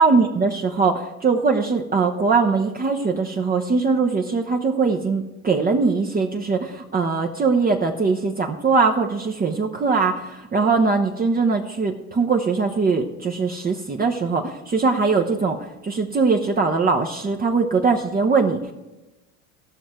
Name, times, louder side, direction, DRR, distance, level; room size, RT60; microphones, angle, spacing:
voice 1, 0.0-18.7, right 4 dB, 20° right, 2 dB, 0.9 m, -21 dB
17.0 x 6.2 x 4.5 m, 1.0 s
hypercardioid pair, 75°, 42 cm